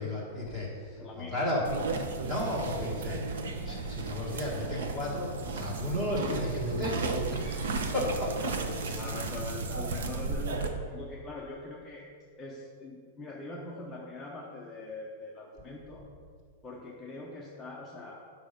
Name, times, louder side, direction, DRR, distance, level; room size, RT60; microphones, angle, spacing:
voice 1, 0.0-1.6 2.2-3.2 3.6-9.0, left 1 dB, 10° right, -4 dB, 1.8 m, -34 dB
voice 2, 1.0-1.6 8.7-12.1 12.4-16.0 16.6-18.2, left 2 dB, 5° left, -4 dB, 0.6 m, -43 dB
sound 1, 1.6-10.7, right 3 dB, 80° right, 0.9 m, -34 dB
9.4 x 5.5 x 5.2 m, 2.1 s
supercardioid pair, 180°, 0 cm